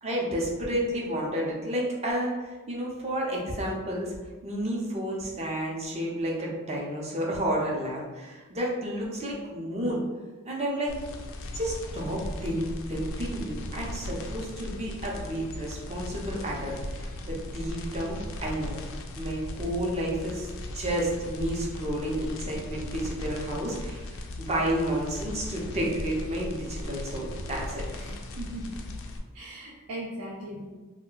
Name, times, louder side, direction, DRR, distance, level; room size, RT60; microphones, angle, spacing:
voice 1, 0.0-4.1 4.4-10.0 10.4-10.9 11.5-18.8 19.1-20.5 20.7-27.8, right 1 dB, 30° right, -3 dB, 0.6 m, -31 dB
sound 1, 10.9-29.2, left 1 dB, 65° left, 0.4 m, -38 dB
voice 2, 27.9-28.8 29.3-30.7, right 1 dB, 80° right, -4 dB, 0.5 m, -39 dB
2.4 x 2.2 x 3.7 m, 1.3 s
head